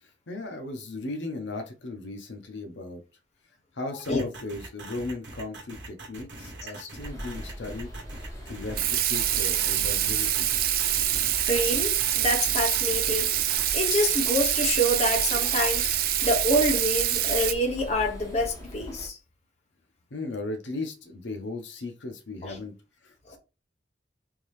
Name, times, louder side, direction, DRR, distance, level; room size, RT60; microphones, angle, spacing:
voice 1, 0.0-3.0 3.7-7.9 8.4-10.5 20.1-22.7 23.0-23.4, left 2 dB, 75° left, 0.8 m, -36 dB
sound 1, 4.0-13.6, right 2 dB, 70° right, 1.0 m, -42 dB
sound 2, 7.0-19.1, equal, 20° left, 1.4 m, -40 dB
Water tap faucet / Sink (filling or washing), 8.7-17.5, right 12 dB, 55° right, 0.4 m, -25 dB
voice 2, 11.5-13.3 13.7-19.2 22.4-22.6 23.3-23.4, equal, 35° left, 0.7 m, -27 dB
3.6 x 2.7 x 3.2 m
head